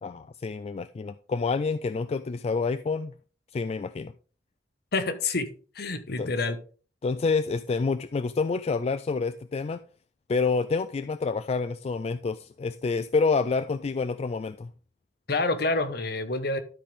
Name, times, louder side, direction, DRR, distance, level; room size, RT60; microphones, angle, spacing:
voice 1, 0.0-3.1 3.5-4.1 6.2-6.3 7.0-9.8 10.3-14.7, left 4 dB, 35° left, 0.3 m, -28 dB
voice 2, 4.9-5.5 5.7-6.6 15.3-16.6, left 3 dB, 60° left, 1.0 m, -27 dB
12.0 x 5.1 x 3.6 m
head